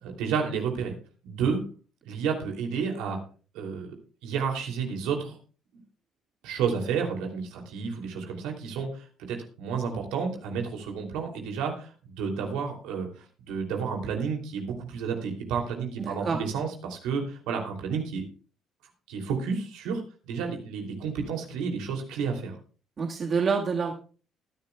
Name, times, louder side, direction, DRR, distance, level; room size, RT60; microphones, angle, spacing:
voice 1, 0.0-0.9 1.2-1.6 2.0-3.2 3.5-3.9 4.2-5.4 6.4-11.9 12.2-18.2 19.1-22.5, right 6 dB, 80° right, 2 dB, 2.9 m, -31 dB
voice 2, 16.0-16.4 23.0-23.9, right 5 dB, 45° right, 1 dB, 1.6 m, -27 dB
20.0 x 10.5 x 2.3 m, 0.38 s
supercardioid pair, 60°, 0 cm